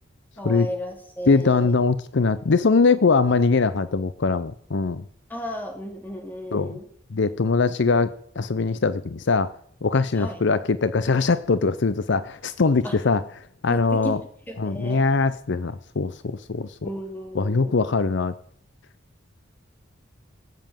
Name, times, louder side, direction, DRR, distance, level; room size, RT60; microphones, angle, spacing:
voice 1, 0.4-1.7 5.3-6.9 10.2-10.4 12.8-13.0 13.7-14.2 14.5-15.1 16.8-17.8, equal, 10° left, 3 dB, 3.4 m, -34 dB
voice 2, 1.3-5.0 6.5-6.7 7.1-9.5 9.8-13.2 13.6-14.2 14.6-16.9 17.3-18.3, left 4 dB, 60° left, 15 dB, 0.6 m, -22 dB
19.0 x 7.8 x 9.0 m, 0.66 s
head